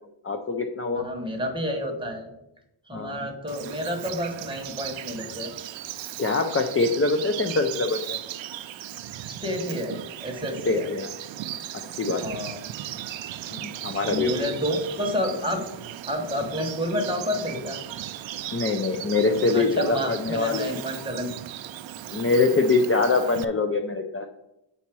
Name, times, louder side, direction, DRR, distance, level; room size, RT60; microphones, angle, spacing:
voice 1, 0.2-1.0 2.9-3.3 6.2-8.2 10.7-11.1 12.0-12.4 13.5-14.5 18.5-20.7 22.1-24.3, left 3 dB, 30° left, 5 dB, 0.5 m, -24 dB
voice 2, 0.9-2.3 2.9-5.5 9.2-10.9 12.2-12.6 14.1-15.6 16.1-17.8 19.3-21.3, equal, 10° right, 2 dB, 1.2 m, -30 dB
Bird vocalization bird call bird song, 3.5-23.4, right 12 dB, 70° right, 0.5 m, -37 dB
8.2 x 4.2 x 6.0 m, 0.86 s
wide cardioid pair, 165°, 48 cm